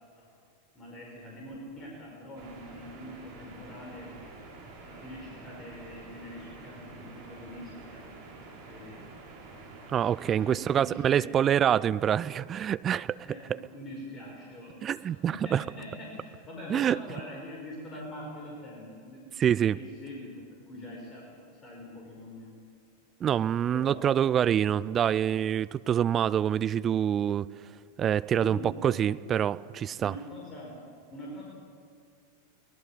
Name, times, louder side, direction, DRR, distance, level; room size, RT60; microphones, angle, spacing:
voice 1, 0.8-4.2 4.8-8.1 8.7-9.2 10.2-11.3 13.2-19.2 19.7-22.5 23.7-24.3 28.3-29.0 30.0-30.8 31.1-31.4, left 1 dB, 25° left, -2 dB, 5.2 m, -44 dB
sound 1, 2.4-10.6, right 3 dB, 50° right, 5.5 m, -48 dB
voice 2, 9.9-13.2 13.5-13.6 14.8-15.6 16.7-17.0 19.4-19.8 23.2-27.5 28.0-30.2, right 9 dB, 25° right, 17 dB, 0.5 m, -26 dB
23.5 x 19.0 x 7.4 m, 2.3 s
figure-of-eight pair, 90°, 0 cm